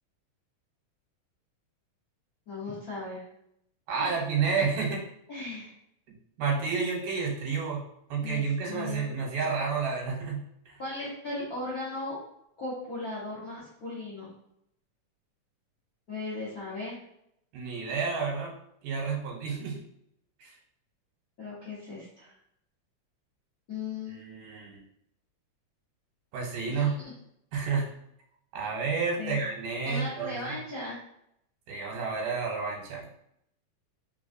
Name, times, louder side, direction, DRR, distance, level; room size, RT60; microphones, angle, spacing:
voice 1, 2.5-3.2 4.0-4.2 5.3-5.7 8.2-9.1 10.8-12.2 12.6-14.3 16.1-17.0 21.4-22.3 23.7-24.2 26.7-26.9 29.2-29.4 29.8-31.0, left 2 dB, 75° left, -10 dB, 0.8 m, -37 dB
voice 2, 3.9-5.0 6.4-7.8 8.1-10.4 10.7-10.8 17.5-18.5 18.8-19.8 20.4-20.5 24.1-24.8 26.3-27.0 27.5-27.9 28.5-30.6 31.7-33.1, right 5 dB, 85° right, -1 dB, 2.7 m, -30 dB
4.7 x 3.8 x 2.6 m, 0.75 s
omnidirectional pair, 3.7 m